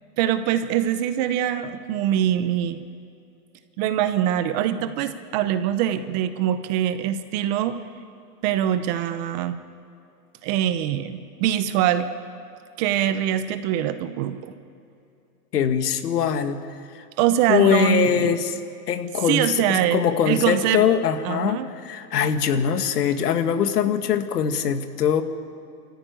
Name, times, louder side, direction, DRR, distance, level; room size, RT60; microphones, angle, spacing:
voice 1, 0.0-2.8 3.8-7.8 8.4-9.6 10.4-12.1 12.8-14.5 17.2-18.4 19.3-20.8 21.2-21.7, right 11 dB, 25° right, 11 dB, 0.8 m, -23 dB
voice 2, 15.5-16.6 16.9-17.0 17.5-18.6 18.9-25.2, left 8 dB, 80° left, 8 dB, 2.0 m, -22 dB
25.0 x 14.0 x 9.4 m, 2.5 s
hypercardioid pair, 155°, 47 cm